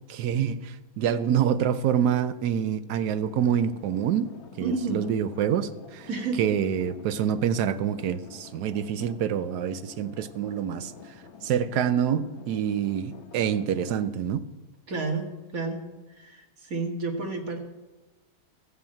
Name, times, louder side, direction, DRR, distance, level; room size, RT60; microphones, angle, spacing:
voice 1, 0.1-4.3 4.6-6.1 6.4-10.9 11.4-14.4, right 9 dB, 75° right, 12 dB, 1.3 m, -26 dB
sound 1, 2.9-14.1, left 6 dB, 50° left, 1.0 m, -48 dB
voice 2, 4.6-5.1 6.1-6.5 14.9-17.6, right 3 dB, 55° right, 3 dB, 2.1 m, -31 dB
13.5 x 7.2 x 8.9 m, 1.1 s
omnidirectional pair, 1.8 m